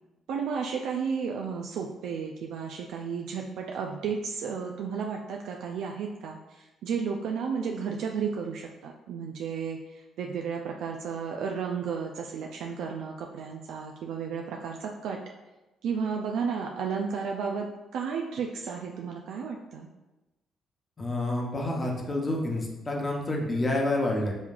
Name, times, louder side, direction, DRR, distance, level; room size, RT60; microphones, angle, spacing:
voice 1, 0.3-9.8 10.2-15.2 15.8-17.7 17.9-19.9, right 6 dB, 80° right, 1 dB, 0.3 m, -33 dB
voice 2, 21.0-24.3, left 2 dB, 30° left, -1 dB, 0.8 m, -28 dB
5.3 x 3.0 x 2.4 m, 1.0 s
cardioid pair, 90°, 0 cm